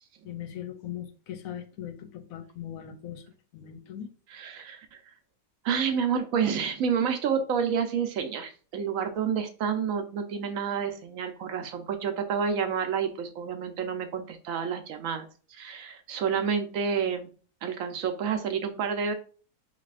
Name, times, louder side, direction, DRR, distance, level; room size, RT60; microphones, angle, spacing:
voice 1, 0.2-3.2 3.5-4.1, left 10 dB, 75° left, 8 dB, 1.0 m, -39 dB
voice 2, 4.3-5.0 5.6-17.3 17.6-19.1, right 7 dB, 70° right, 6 dB, 1.1 m, -29 dB
5.4 x 3.2 x 2.5 m, 0.39 s
omnidirectional pair, 1.5 m